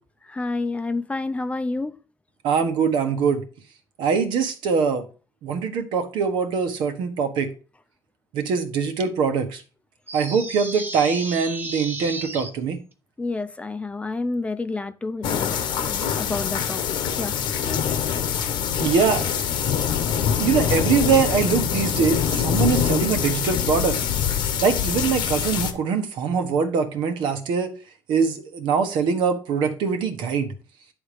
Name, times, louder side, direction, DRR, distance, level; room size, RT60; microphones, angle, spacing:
voice 1, 0.3-2.0 13.2-17.3 17.7-17.8, left 3 dB, 15° left, 0.5 m, -29 dB
voice 2, 2.4-3.4 4.0-5.1 5.4-7.5 8.3-9.6 10.1-12.8 18.8-19.4 20.4-24.0 24.6-27.7 28.1-30.5, right 6 dB, 80° right, 1.3 m, -23 dB
sound 1, 10.1-12.5, right 2 dB, 25° right, 1.1 m, -33 dB
sound 2, 15.2-25.7, left 8 dB, 80° left, 1.0 m, -24 dB
10.0 x 3.6 x 5.0 m
cardioid pair, 105°, 8 cm